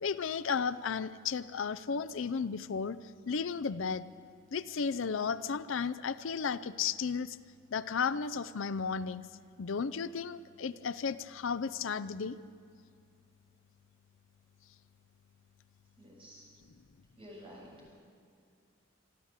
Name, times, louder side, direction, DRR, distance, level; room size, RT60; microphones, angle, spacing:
voice 1, 0.0-3.0 3.3-4.1 4.5-7.4 7.7-9.2 9.6-12.4, left 6 dB, 70° left, 15 dB, 0.5 m, -34 dB
voice 2, 16.0-16.5 17.2-17.9, equal, 25° right, -3 dB, 7.2 m, -51 dB
25.5 x 12.5 x 8.2 m, 2.3 s
head